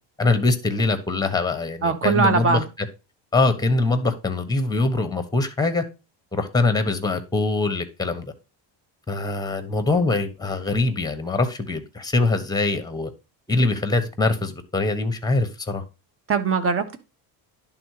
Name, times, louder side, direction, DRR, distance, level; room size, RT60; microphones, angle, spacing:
voice 1, 0.2-2.9 3.3-5.8 6.3-8.3 9.1-13.1 13.5-15.8, left 3 dB, 10° left, 1.1 m, -23 dB
voice 2, 1.8-2.6 16.3-17.0, right 5 dB, 30° right, 1.2 m, -21 dB
11.0 x 3.8 x 4.8 m
cardioid pair, 125°, 47 cm